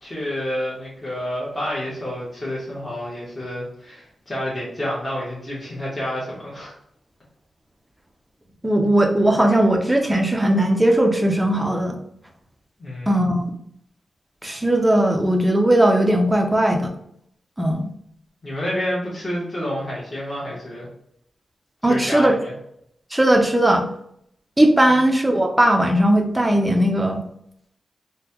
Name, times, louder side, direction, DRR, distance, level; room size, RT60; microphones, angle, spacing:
voice 1, 0.0-6.7 12.8-13.3 18.4-20.9 21.8-22.5 24.9-25.0, equal, 20° left, -6 dB, 1.2 m, -29 dB
voice 2, 8.6-12.0 13.1-13.5 14.4-16.9 17.6-17.9 21.8-22.3 23.1-23.9 24.6-27.2, right 1 dB, 10° right, 2 dB, 0.5 m, -18 dB
4.1 x 2.2 x 2.9 m, 0.72 s
wide cardioid pair, 125°, 0 cm